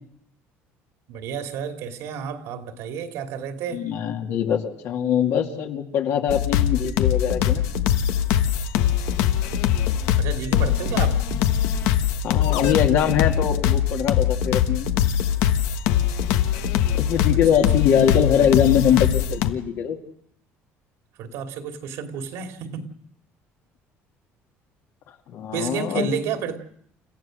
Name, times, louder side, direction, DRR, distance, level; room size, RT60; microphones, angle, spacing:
voice 1, 1.1-3.8 10.1-11.2 17.3-17.4 21.2-22.9 25.5-26.6, right 6 dB, 75° right, 5 dB, 2.6 m, -31 dB
voice 2, 3.7-7.7 12.2-14.9 17.0-20.0 25.3-26.1, left 9 dB, 65° left, 3 dB, 2.4 m, -22 dB
sound 1, 6.3-19.5, left 10 dB, 85° left, 1.3 m, -22 dB
29.5 x 15.0 x 6.4 m, 0.66 s
cardioid pair, 140°, 5 cm